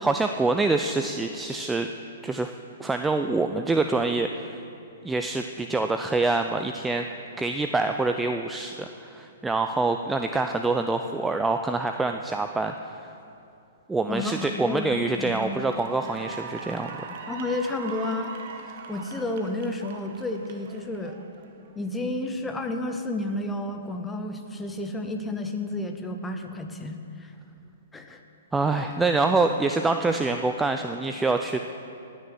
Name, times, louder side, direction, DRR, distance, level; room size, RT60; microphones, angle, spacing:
voice 1, 0.0-1.9 2.2-2.5 2.8-4.6 5.0-7.1 7.4-13.0 13.9-16.9 28.5-31.6, right 3 dB, 10° right, 6 dB, 0.4 m, -25 dB
voice 2, 14.1-15.6 17.3-18.3 18.9-21.2 21.7-27.3 27.9-28.2, left 2 dB, 10° left, 5 dB, 1.0 m, -31 dB
Cheering / Applause, 14.5-14.8 15.2-21.8, right 6 dB, 50° right, 1.1 m, -41 dB
18.5 x 6.4 x 6.1 m, 2.7 s
hypercardioid pair, 120°, 0 cm